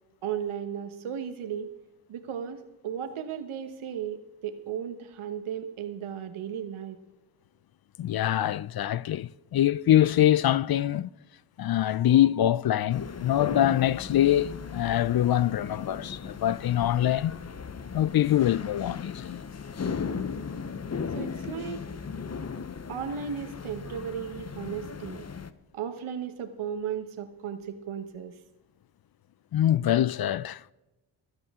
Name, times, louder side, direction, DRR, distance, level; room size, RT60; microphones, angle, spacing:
voice 1, 0.2-1.7 2.1-7.0 21.1-21.9 22.9-25.2 25.7-28.4, right 8 dB, 85° right, 1.3 m, -35 dB
voice 2, 8.0-11.1 11.6-17.4 17.9-19.4 29.5-30.7, left 12 dB, 50° left, 0.5 m, -24 dB
sound 1, 12.9-25.5, left 6 dB, 35° left, 0.8 m, -37 dB
23.0 x 8.9 x 3.7 m
cardioid pair, 60°, 48 cm